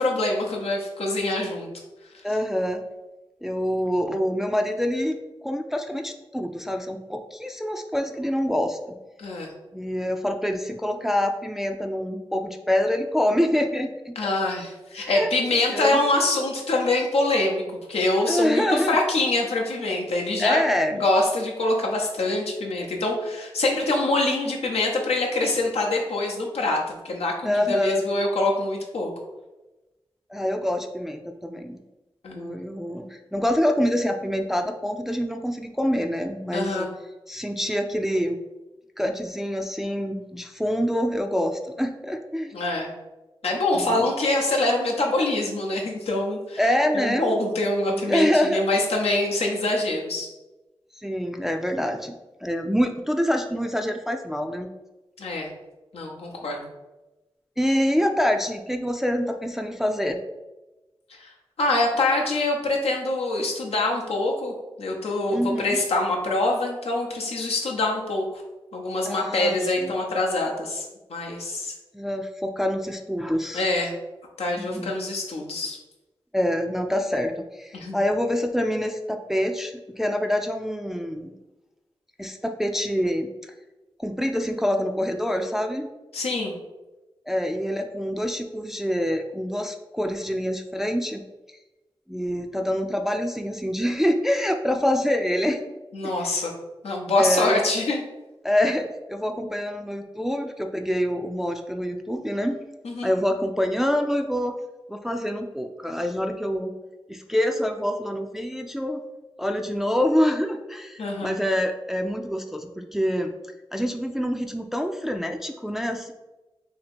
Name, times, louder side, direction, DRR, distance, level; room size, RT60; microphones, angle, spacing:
voice 1, 0.0-1.7 9.2-9.5 14.2-17.6 17.9-20.6 21.0-29.1 32.2-32.6 36.5-36.9 42.5-42.9 43.4-46.6 46.9-50.3 55.2-55.5 55.9-56.7 61.2-61.3 61.6-64.5 64.8-68.4 68.7-70.8 71.1-71.7 73.5-73.9 74.4-75.8 77.7-78.0 86.1-86.5 95.9-96.5 96.8-98.0 102.8-103.1 111.0-111.4, left 2 dB, 85° left, -1 dB, 0.7 m, -25 dB
voice 2, 2.2-2.8 3.4-8.9 9.7-14.3 15.0-15.3 15.7-16.0 18.3-19.0 20.4-21.0 27.4-28.0 30.3-31.8 32.3-36.9 37.3-38.4 39.0-42.5 43.7-44.1 46.6-47.4 47.9-48.6 51.0-52.1 52.4-54.7 57.6-60.2 65.3-65.8 69.1-70.0 71.9-73.6 74.5-74.9 76.3-81.3 82.2-83.5 84.0-85.9 87.3-91.2 92.1-96.1 97.2-97.7 98.4-102.6 103.0-104.5 104.9-106.7 107.1-109.0 109.4-113.3 113.7-116.1, equal, 5° right, 4 dB, 0.3 m, -26 dB
2.8 x 2.7 x 4.2 m, 1.1 s
cardioid pair, 45°, 10 cm